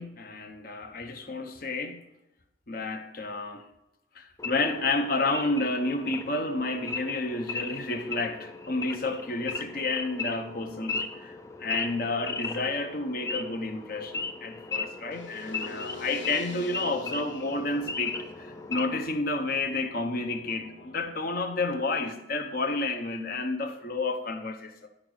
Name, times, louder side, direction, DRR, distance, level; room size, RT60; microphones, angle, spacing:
voice 1, 0.0-2.0 2.7-3.6 4.1-24.9, left 2 dB, 50° left, 6 dB, 1.0 m, -30 dB
Wild animals / Idling, 4.4-19.1, left 4 dB, 15° left, 0.5 m, -37 dB
sound 1, 15.1-21.1, left 3 dB, 80° left, 1.1 m, -45 dB
11.5 x 5.1 x 6.4 m, 0.88 s
head